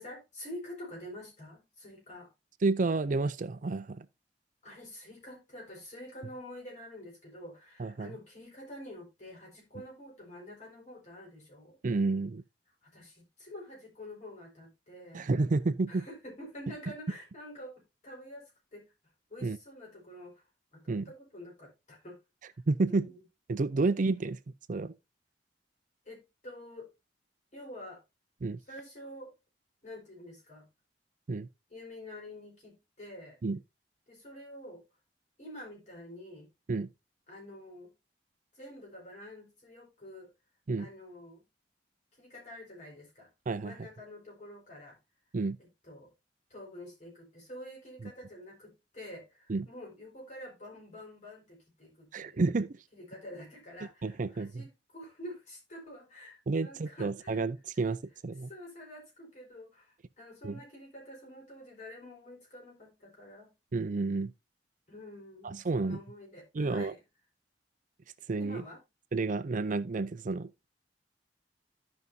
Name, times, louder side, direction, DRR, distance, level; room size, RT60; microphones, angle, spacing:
voice 1, 0.0-2.3 4.6-11.8 12.8-15.3 15.9-18.9 19.3-20.4 20.7-22.2 22.5-23.2 26.0-26.9 27.5-28.0 28.7-29.3 29.8-30.7 31.7-33.4 34.1-34.8 35.4-36.5 37.3-37.9 38.5-40.3 40.8-41.4 42.2-43.3 43.6-45.0 45.6-46.1 46.5-52.5 52.9-57.4 57.7-57.9 58.5-63.5 64.9-67.0 68.4-68.8, left 1 dB, 45° left, 4.9 m, -48 dB
voice 2, 2.6-4.1 7.8-8.1 11.8-12.4 15.1-16.0 19.4-19.6 20.9-21.1 22.7-23.1 23.5-24.4 24.7-24.9 28.4-28.6 31.3-31.5 33.4-33.6 36.7-36.9 40.7-40.9 43.5-43.7 45.3-45.6 49.5-49.7 52.1-52.8 54.0-54.7 56.5-58.5 60.4-60.6 63.7-64.3 65.4-66.0 66.5-66.9 68.3-68.6 69.1-70.5, right 3 dB, 45° right, 0.5 m, -30 dB
14.5 x 5.3 x 2.7 m
head